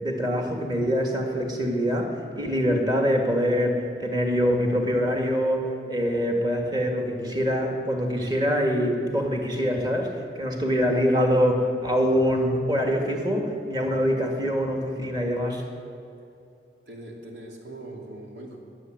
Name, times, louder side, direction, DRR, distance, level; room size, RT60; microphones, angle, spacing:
voice 1, 0.0-10.1 10.4-15.6, equal, 25° right, 2 dB, 1.8 m, -24 dB
voice 2, 16.9-18.6, right 1 dB, 85° right, 0 dB, 2.8 m, -41 dB
21.5 x 8.1 x 7.7 m, 2.7 s
head